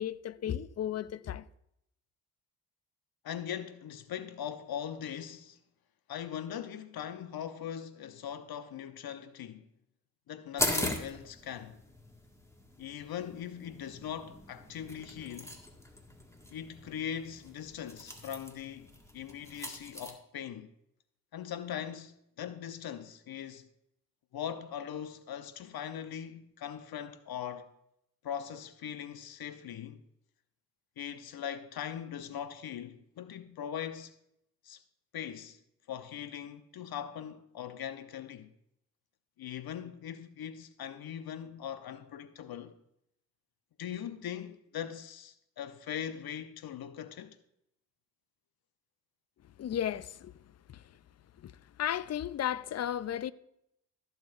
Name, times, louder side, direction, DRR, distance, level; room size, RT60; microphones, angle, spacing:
voice 1, 0.0-1.5 49.4-50.4 50.7-50.9 51.4-53.3, left 10 dB, 35° left, 0.6 m, -35 dB
voice 2, 3.2-5.6 6.1-9.7 10.3-11.8 12.8-15.5 16.5-20.7 21.3-23.7 24.3-27.7 28.2-30.0 31.0-34.1 34.6-34.8 35.1-35.6 35.9-38.5 39.4-42.7 43.8-47.4, left 9 dB, 55° left, 0.9 m, -40 dB
sound 1, 10.6-20.1, left 1 dB, 5° left, 1.8 m, -40 dB
15.0 x 7.2 x 2.6 m
hypercardioid pair, 45°, 44 cm